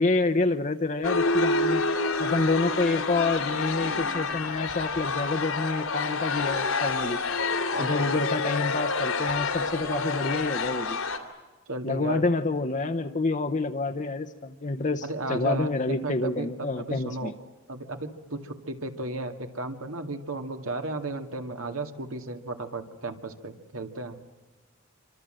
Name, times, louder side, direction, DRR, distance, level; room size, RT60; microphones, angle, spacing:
voice 1, 0.0-1.8 2.2-7.2 7.8-11.0 11.8-15.0 15.3-17.3, left 3 dB, 35° left, 7 dB, 0.8 m, -28 dB
sound 1, 1.0-11.2, left 3 dB, 85° left, 2.9 m, -28 dB
voice 2, 7.7-8.1 11.7-12.3 15.0-17.3 17.7-24.2, right 2 dB, 85° right, 6 dB, 2.2 m, -34 dB
27.5 x 25.5 x 7.7 m, 1.2 s
head